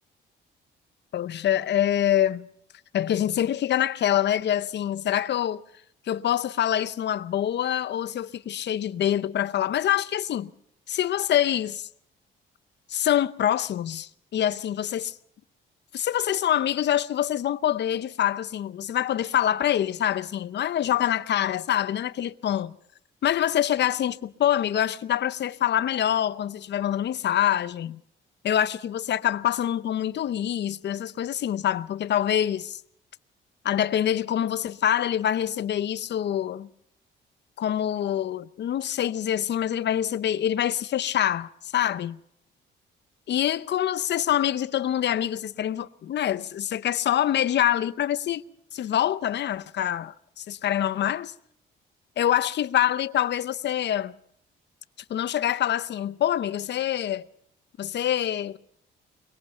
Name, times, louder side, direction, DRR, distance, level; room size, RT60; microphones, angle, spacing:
voice 1, 1.1-2.5 2.9-5.6 6.1-10.5 10.9-11.9 12.9-15.1 15.9-22.7 23.2-28.0 28.4-32.8 33.6-36.7 37.6-42.2 43.3-48.4 48.7-51.3 52.2-54.1 55.1-57.3 57.8-58.6, left 11 dB, 60° left, 0.8 m, -25 dB
23.0 x 20.5 x 5.5 m
cardioid pair, 90°, 20 cm